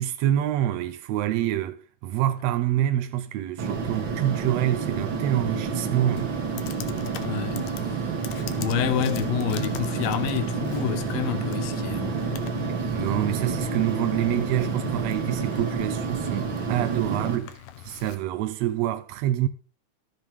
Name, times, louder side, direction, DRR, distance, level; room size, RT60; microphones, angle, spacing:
voice 1, 0.0-6.3 12.9-19.5, right 13 dB, 75° right, 1.6 m, -26 dB
sound 1, 3.6-17.4, right 4 dB, 50° right, 1.6 m, -29 dB
Computer keyboard, 6.2-18.2, left 12 dB, 85° left, 2.4 m, -43 dB
voice 2, 7.2-8.0 8.5-12.2, left 10 dB, 65° left, 1.8 m, -29 dB
12.5 x 7.3 x 4.7 m
omnidirectional pair, 3.7 m